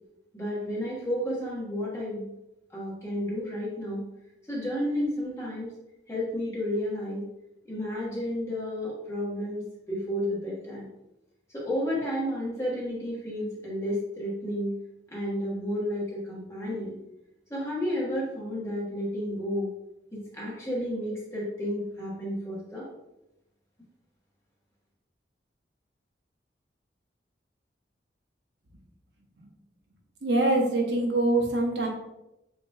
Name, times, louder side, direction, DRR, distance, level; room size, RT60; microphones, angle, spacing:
voice 1, 0.3-2.2 2.7-4.0 4.5-5.7 6.1-7.2 7.7-9.6 9.9-10.8 11.5-14.7 15.1-16.9 17.5-19.7 20.1-22.9, equal, 15° left, -5 dB, 1.3 m, -31 dB
voice 2, 30.2-31.9, right 2 dB, 75° right, 0 dB, 0.9 m, -24 dB
6.9 x 3.0 x 2.3 m, 0.90 s
head